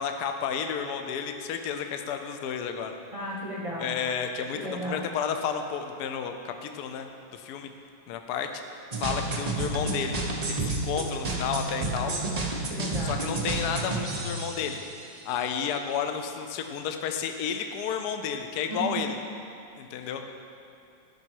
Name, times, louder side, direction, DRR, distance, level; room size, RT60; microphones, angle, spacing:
voice 1, 0.0-2.9 3.8-7.1 7.3-7.7 8.1-8.6 9.0-10.2 10.5-12.1 13.0-14.8 15.3-19.2 19.8-20.2, left 7 dB, 70° left, 6 dB, 1.0 m, -31 dB
voice 2, 3.1-4.0 4.5-5.0 12.7-13.1 18.7-19.0, right 1 dB, 25° right, -5 dB, 0.8 m, -34 dB
sound 1, 8.9-15.1, right 2 dB, 60° right, 0.4 m, -31 dB
12.5 x 5.5 x 4.6 m, 2.6 s
omnidirectional pair, 2.2 m